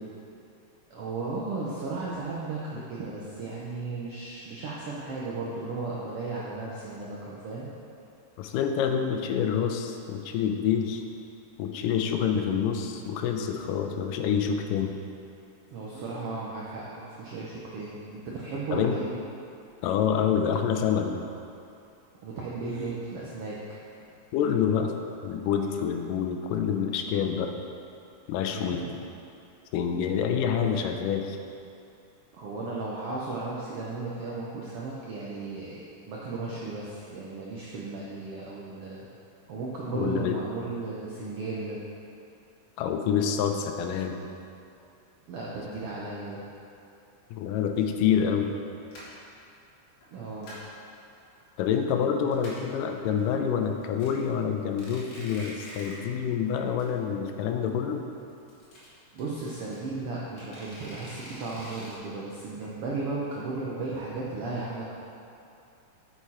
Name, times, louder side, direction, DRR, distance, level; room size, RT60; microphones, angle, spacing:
voice 1, 0.9-7.7 15.7-19.1 22.2-23.8 28.5-28.9 32.3-39.1 39.5-41.8 45.3-46.4 50.1-50.5 59.1-64.8, right 3 dB, 80° right, -5 dB, 1.3 m, -35 dB
voice 2, 8.4-11.0 11.6-14.9 18.7-19.0 19.8-21.2 24.3-24.9 25.2-27.5 28.3-28.8 29.7-31.4 39.9-40.4 42.8-44.2 47.3-48.5 51.6-58.0, left 7 dB, 85° left, 4 dB, 2.3 m, -27 dB
sound 1, 15.9-16.2 18.3-18.6 19.4-19.5 20.3-20.6 22.6-22.9 24.0-24.1 25.5-25.9 26.8-26.9 27.2-27.3 28.5-28.8 30.5-30.9, right 2 dB, 50° right, 2.5 m, -49 dB
sound 2, 47.8-47.9 48.4-48.6 48.9-49.3 50.0-50.8 51.2-51.7 52.0-52.1 52.3-52.8 53.2-53.3 53.6-54.1 54.6-56.1 56.4-56.5 56.8-56.9 57.1-57.2 58.3-59.8 60.4-62.0, equal, 50° left, 2.3 m, -46 dB
8.2 x 6.9 x 4.3 m, 2.7 s
omnidirectional pair, 3.8 m